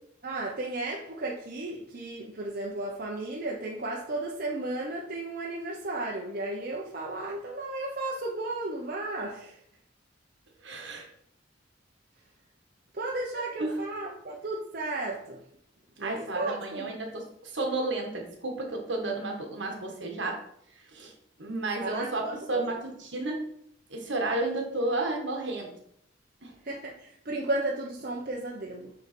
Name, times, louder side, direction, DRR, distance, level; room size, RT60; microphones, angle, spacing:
voice 1, 0.2-9.6 12.9-15.4 16.0-17.0 21.8-22.8 26.6-28.9, right 2 dB, 45° right, -3 dB, 0.9 m, -34 dB
voice 2, 10.6-11.0 13.3-13.8 16.0-20.4 20.9-21.1 21.4-23.4 23.9-25.7 26.4-26.5, right 2 dB, 65° right, 1 dB, 1.6 m, -32 dB
7.7 x 3.9 x 4.4 m, 0.69 s
head